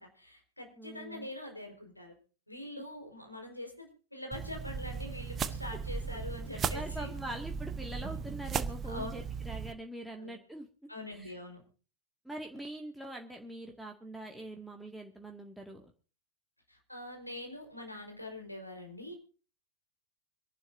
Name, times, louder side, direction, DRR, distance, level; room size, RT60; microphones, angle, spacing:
voice 1, 0.0-2.1 2.5-7.1 8.9-9.1 10.2-10.3 10.9-11.6 16.7-19.1, left 1 dB, 85° left, 4 dB, 4.5 m, -44 dB
voice 2, 0.8-1.3 6.5-10.7 11.1-11.4 12.3-15.9, right 1 dB, ahead, 1 dB, 2.0 m, -43 dB
sound 1, 4.3-9.7, right 6 dB, 25° right, 1.1 m, -37 dB
26.0 x 11.5 x 2.7 m, 0.37 s
figure-of-eight pair, 90°, 0 cm